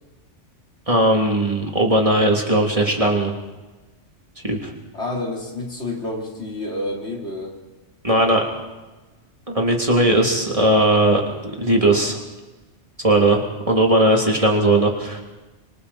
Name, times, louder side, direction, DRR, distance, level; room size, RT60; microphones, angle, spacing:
voice 1, 0.9-3.3 4.4-4.7 8.0-8.4 9.5-12.2 13.0-13.4 13.7-15.2, right 1 dB, 30° right, 0 dB, 3.3 m, -18 dB
voice 2, 4.9-7.6, left 2 dB, 65° left, -2 dB, 4.5 m, -29 dB
27.5 x 25.0 x 4.4 m, 1.1 s
omnidirectional pair, 1.2 m